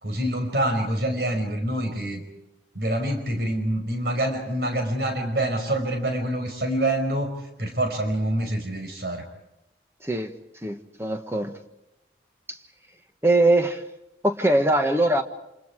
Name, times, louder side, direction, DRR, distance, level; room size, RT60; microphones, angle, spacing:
voice 1, 0.0-2.2 2.8-7.3 7.6-9.2, right 1 dB, 60° right, 5 dB, 5.3 m, -26 dB
voice 2, 10.6-11.5 13.2-13.8 14.2-15.2, right 1 dB, 15° right, 6 dB, 1.5 m, -21 dB
29.0 x 27.0 x 4.9 m, 0.89 s
head